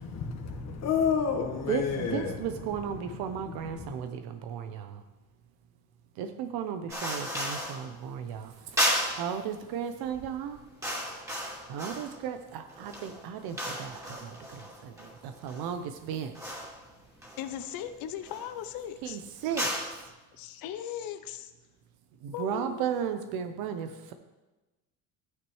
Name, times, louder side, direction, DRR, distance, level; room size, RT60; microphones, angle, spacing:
voice 1, 0.0-2.4 3.8-3.9, left 6 dB, 45° left, 1.5 m, -29 dB
voice 2, 1.7-5.0 6.1-8.8 9.1-10.6 11.7-16.4 19.0-20.0 22.2-24.1, right 8 dB, 85° right, 0.8 m, -35 dB
sound 1, 6.9-7.9 8.8-9.3 10.0-10.2 10.5-12.2 12.7-15.7 16.3-16.8 17.2-17.8 18.2-18.5 19.4-20.0, equal, 10° right, 2.6 m, -34 dB
voice 3, 17.4-19.2 20.4-21.5 22.3-22.8, left 10 dB, 70° left, 0.7 m, -38 dB
12.0 x 9.4 x 3.2 m
cardioid pair, 100°, 36 cm